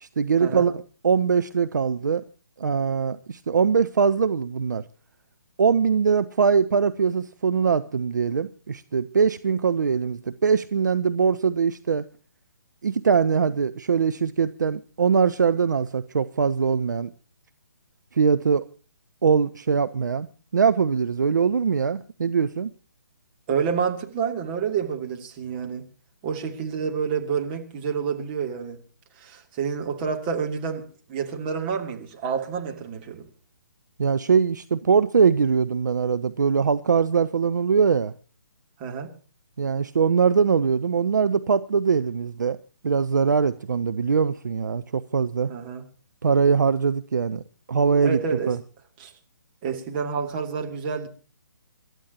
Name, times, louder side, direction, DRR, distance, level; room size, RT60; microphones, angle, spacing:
voice 1, 0.0-2.2 2.6-4.8 5.6-12.0 12.8-17.1 18.1-18.7 19.2-20.3 20.5-22.7 34.0-38.1 39.6-42.6 42.8-45.5 46.2-47.4 47.7-48.2 48.5-48.6, right 6 dB, 60° right, 0.7 m, -22 dB
voice 2, 23.5-25.8 26.2-28.8 29.2-33.3 38.8-39.1 45.5-45.8 48.0-48.5 49.0-49.1 49.6-51.1, right 6 dB, 30° right, 2.7 m, -28 dB
27.5 x 13.0 x 2.9 m
figure-of-eight pair, 135°, 11 cm